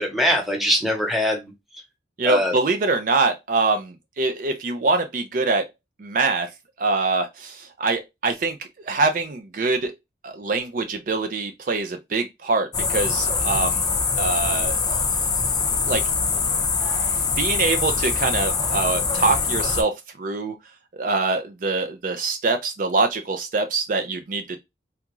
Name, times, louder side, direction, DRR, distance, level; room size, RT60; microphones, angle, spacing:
voice 1, 0.0-1.5 2.2-2.5, equal, ahead, 0.9 m, -22 dB
voice 2, 2.2-5.6 6.0-6.5 6.8-8.6 8.8-9.9 10.2-13.8 14.2-14.8 15.9-16.0 17.2-20.5 20.9-24.6, right 3 dB, 50° right, 0.4 m, -24 dB
sound 1, 12.7-19.8, left 5 dB, 25° left, 0.5 m, -23 dB
3.4 x 2.4 x 3.0 m
head